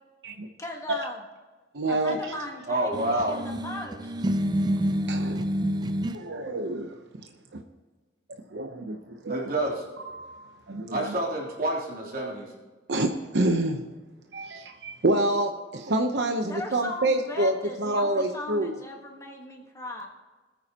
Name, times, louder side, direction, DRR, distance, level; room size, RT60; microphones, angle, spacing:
voice 1, 0.6-1.2 1.9-4.1 16.4-20.1, left 1 dB, 15° left, 1 dB, 1.4 m, -38 dB
voice 2, 1.7-2.2 5.1-5.5 6.1-6.9 7.5-7.6 8.5-9.5 10.1-11.1 12.9-13.8 14.3-18.8, right 1 dB, 70° right, 4 dB, 0.9 m, -27 dB
voice 3, 2.7-3.4 9.3-9.8 10.9-12.5, right 1 dB, 55° right, -3 dB, 3.4 m, -28 dB
sound 1, 2.9-6.2, equal, 25° right, 0.5 m, -28 dB
20.0 x 9.4 x 3.0 m, 1.3 s
head